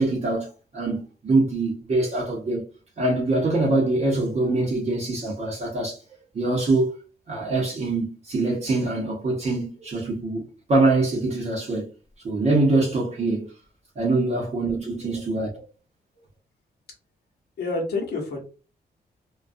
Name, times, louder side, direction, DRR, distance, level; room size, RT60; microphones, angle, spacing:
voice 1, 0.0-2.6 3.0-6.0 6.3-6.9 7.3-11.9 12.2-13.5 14.0-15.5, right 2 dB, 40° right, 0.7 m, -24 dB
voice 2, 15.0-15.6 17.6-18.4, left 3 dB, 70° left, 0.9 m, -30 dB
2.3 x 2.2 x 2.5 m
wide cardioid pair, 145°, 17 cm